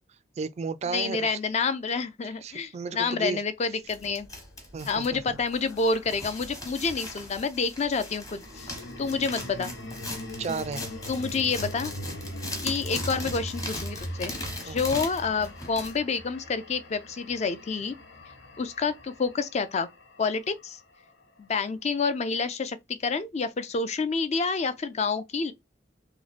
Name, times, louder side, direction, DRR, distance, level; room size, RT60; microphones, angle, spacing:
voice 1, 0.4-1.4 2.4-3.4 4.7-5.4 10.4-10.9 14.7-15.0, right 5 dB, 35° right, 0.3 m, -34 dB
voice 2, 0.9-4.3 4.9-8.7 9.0-9.7 11.1-11.9 12.6-17.9 18.6-19.9 20.2-20.8 21.4-25.5, left 4 dB, 40° left, 0.4 m, -28 dB
sound 1, 3.9-16.0, left 1 dB, 20° left, 1.0 m, -39 dB
sound 2, 4.1-6.6 8.2-20.5, equal, 80° left, 0.9 m, -40 dB
3.0 x 2.1 x 4.0 m
head